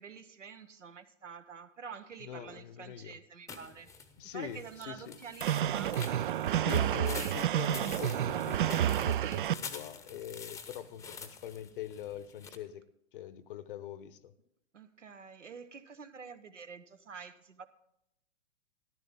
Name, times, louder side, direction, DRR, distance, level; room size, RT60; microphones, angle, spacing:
voice 1, 0.0-3.9 4.3-6.0 7.0-7.7 14.7-17.7, right 6 dB, 75° right, 11 dB, 1.1 m, -48 dB
voice 2, 2.2-3.2 4.2-5.2 6.6-12.8 13.1-14.3, left 10 dB, 45° left, 16 dB, 0.9 m, -43 dB
sound 1, 3.5-12.6, left 5 dB, 10° left, 0.8 m, -47 dB
sound 2, 5.4-9.5, right 11 dB, 45° right, 0.4 m, -30 dB
14.0 x 12.0 x 3.7 m, 0.79 s
figure-of-eight pair, 110°, 37 cm